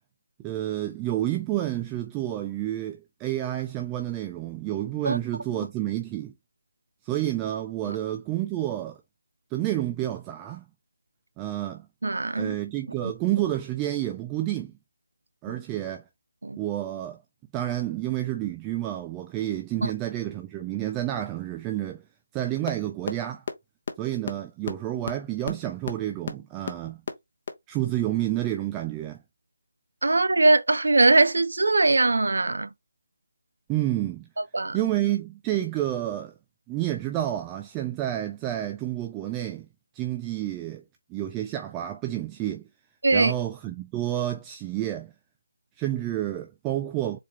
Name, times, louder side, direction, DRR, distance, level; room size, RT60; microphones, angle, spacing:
voice 1, 0.4-6.3 7.0-9.0 9.5-10.6 11.4-11.9 12.4-14.7 15.4-16.0 16.6-17.2 17.5-22.0 22.3-23.4 24.0-27.0 27.7-29.2 33.7-34.3 34.7-36.3 36.7-39.7 39.9-40.8 41.1-42.6 43.1-45.1 45.8-47.2, right 13 dB, 15° right, 0.3 m, -29 dB
voice 2, 12.0-12.5 13.0-13.1 15.5-15.6 16.4-16.6 19.8-19.9 30.0-32.7 34.5-34.8 43.0-43.3, right 2 dB, 80° right, 0.5 m, -21 dB
sound 1, 22.7-22.8 23.1-23.2 23.5-23.6 23.9-24.0 24.3-24.4 24.7-24.8 25.0-25.1 25.4-25.5 25.8-25.9 26.3-26.4 26.7-26.8 27.1-27.2 27.5-27.6, left 5 dB, 45° left, 0.8 m, -29 dB
4.2 x 2.3 x 3.1 m
figure-of-eight pair, 165°, 0 cm